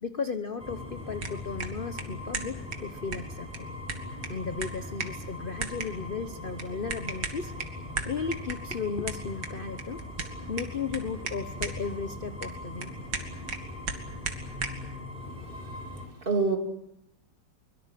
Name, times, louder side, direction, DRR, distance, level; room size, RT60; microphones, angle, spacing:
voice 1, 0.0-3.7 4.3-10.1 10.5-12.9, left 5 dB, 40° left, 10 dB, 1.0 m, -35 dB
sound 1, 0.6-16.1, left 2 dB, 5° right, 5.3 m, -40 dB
sound 2, 1.0-14.9, right 4 dB, 70° right, 2.6 m, -39 dB
voice 2, 15.4-15.9 16.2-16.6, right 4 dB, 30° right, 5 dB, 2.9 m, -28 dB
23.5 x 22.0 x 7.6 m, 0.80 s
omnidirectional pair, 1.9 m